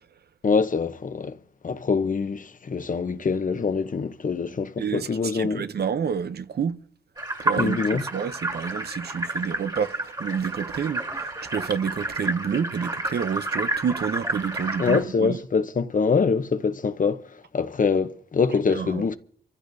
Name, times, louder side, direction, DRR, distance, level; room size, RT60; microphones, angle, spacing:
voice 1, 0.4-1.4 1.6-5.6 7.6-8.0 14.8-17.2 17.5-19.2, left 5 dB, 50° left, 0.8 m, -24 dB
voice 2, 4.8-6.8 7.4-15.4 18.7-19.2, right 7 dB, 70° right, 0.7 m, -29 dB
sound 1, 7.2-15.0, right 2 dB, 25° right, 2.1 m, -30 dB
26.5 x 15.0 x 2.7 m
wide cardioid pair, 85°, 17 cm